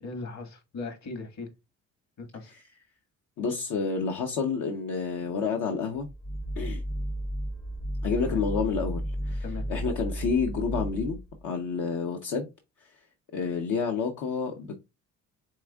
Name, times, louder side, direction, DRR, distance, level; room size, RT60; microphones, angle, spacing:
voice 1, 0.0-1.5 2.2-2.5 8.2-8.4 9.4-9.7, left 3 dB, 65° left, 1.7 m, -38 dB
voice 2, 3.4-6.1 6.6-6.8 8.0-11.2 11.4-12.5 13.3-14.8, left 5 dB, 85° left, 0.9 m, -29 dB
sound 1, 6.0-11.4, equal, 10° left, 0.4 m, -33 dB
4.8 x 3.6 x 2.3 m
cardioid pair, 90°, 30 cm